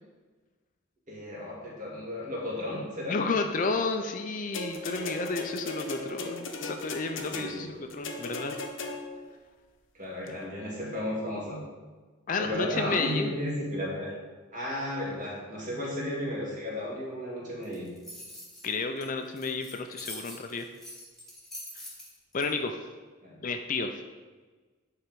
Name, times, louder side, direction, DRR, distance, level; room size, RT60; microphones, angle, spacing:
voice 1, 1.1-3.2 7.2-7.7 9.9-11.7 12.4-14.1 14.5-17.9 23.2-23.4, left 1 dB, 35° right, -4 dB, 2.1 m, -34 dB
voice 2, 3.1-8.6 10.3-10.4 12.3-13.3 18.6-20.7 21.8-21.9 22.3-22.8 23.4-24.0, left 3 dB, 40° left, 6 dB, 0.4 m, -31 dB
sound 1, 4.5-9.3 10.3-10.4, left 3 dB, 60° left, 0.8 m, -37 dB
sound 2, 17.6-22.5, left 1 dB, ahead, 1.5 m, -44 dB
9.7 x 3.9 x 4.6 m, 1.4 s
head